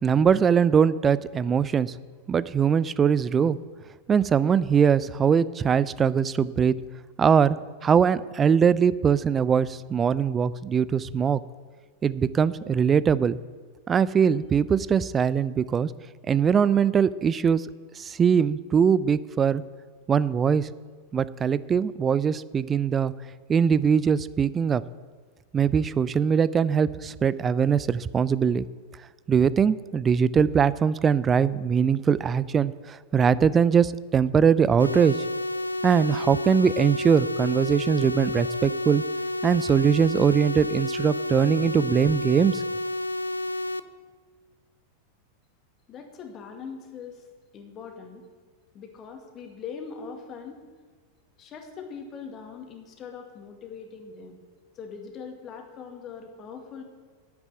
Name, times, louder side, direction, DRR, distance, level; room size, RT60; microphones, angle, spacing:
voice 1, 0.0-1.9 2.3-3.6 4.1-6.8 7.2-7.6 7.8-11.4 12.0-13.4 13.9-15.9 16.3-17.7 18.0-19.6 20.1-20.7 21.1-23.1 23.5-24.8 25.5-28.6 29.3-35.2 35.8-39.0 39.4-42.6, right 7 dB, 20° right, 18 dB, 0.4 m, -21 dB
sound 1, 34.8-43.8, left 1 dB, 80° left, 0.4 m, -30 dB
voice 2, 45.9-47.3 47.5-48.3 48.7-50.6 51.4-54.4 54.7-56.8, left 6 dB, 30° left, 3 dB, 2.0 m, -41 dB
9.5 x 8.3 x 8.8 m, 1.5 s
figure-of-eight pair, 90°, 0 cm